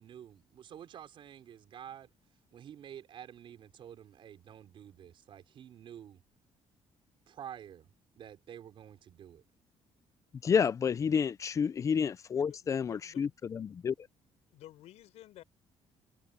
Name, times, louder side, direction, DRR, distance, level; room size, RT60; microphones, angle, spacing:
voice 1, 0.0-2.1 2.5-6.2 7.3-7.9 8.2-9.4, right 9 dB, 50° right, 5.0 m, -49 dB
voice 2, 10.4-14.1, left 6 dB, 30° left, 0.4 m, -30 dB
voice 3, 12.4-13.2 14.5-15.4, left 14 dB, 85° left, 5.2 m, -53 dB
cardioid pair, 170°, 11 cm